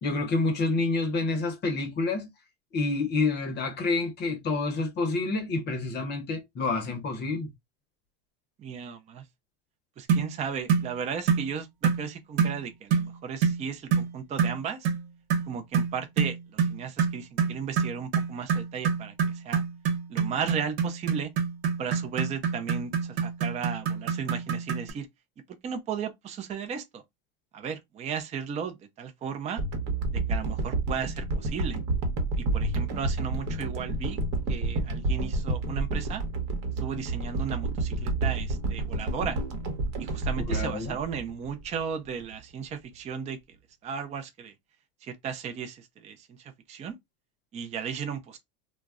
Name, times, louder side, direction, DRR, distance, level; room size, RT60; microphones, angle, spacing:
voice 1, 0.0-2.3 2.7-7.5 40.4-41.0, left 3 dB, 30° left, 0.7 m, -28 dB
voice 2, 8.6-9.2 10.0-14.9 15.5-19.6 20.1-21.3 21.8-25.1 25.6-27.0 27.5-29.6 30.1-31.8 32.4-34.2 34.5-36.2 36.8-39.4 40.0-43.4 43.8-44.5 45.0-47.0 47.5-48.4, right 7 dB, 20° right, 0.4 m, -35 dB
sound 1, 10.1-10.3 10.7-10.9 11.3-11.5 11.8-12.0 12.4-12.6 12.9-13.1 13.4-13.6 13.9-14.1 14.4-14.6 14.8-15.0 15.3-24.9, right 6 dB, 85° right, 0.9 m, -26 dB
sound 2, 29.6-41.8 42.3-42.4, right 2 dB, 55° right, 1.0 m, -30 dB
2.2 x 2.0 x 3.5 m
supercardioid pair, 115°, 32 cm